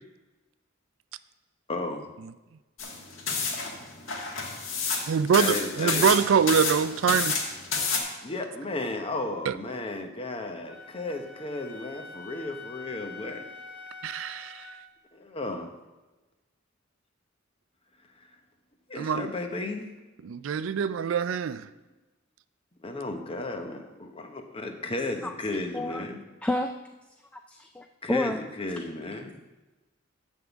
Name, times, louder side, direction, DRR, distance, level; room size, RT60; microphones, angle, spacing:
voice 1, 1.7-2.1 5.3-6.1 8.2-13.4 15.1-15.7 18.9-19.9 22.8-26.2 28.0-29.3, left 2 dB, 30° left, 5 dB, 0.8 m, -34 dB
sound 1, 2.8-8.0, left 4 dB, 80° left, 1.6 m, -29 dB
voice 2, 5.1-7.4 9.5-9.6 14.0-14.7 18.9-19.3 20.2-21.7, right 7 dB, 75° right, 15 dB, 0.4 m, -24 dB
Wind instrument woodwind instrument, 10.7-14.8, left 4 dB, 60° left, 1.9 m, -45 dB
voice 3, 25.2-26.0 26.4-26.7 27.3-28.4, left 1 dB, 5° left, 4 dB, 0.3 m, -30 dB
10.0 x 3.7 x 6.9 m, 1.2 s
head